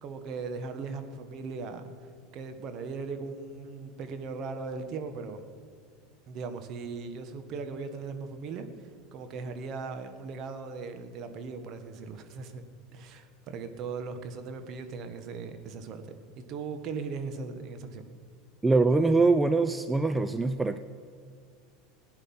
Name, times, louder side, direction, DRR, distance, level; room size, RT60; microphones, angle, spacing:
voice 1, 0.0-5.4 6.3-12.6 12.9-18.0, right 4 dB, 50° right, 8 dB, 1.5 m, -38 dB
voice 2, 18.6-20.8, right 3 dB, 15° right, 10 dB, 0.5 m, -23 dB
17.0 x 9.8 x 5.6 m, 2.1 s
hypercardioid pair, 90°, 0 cm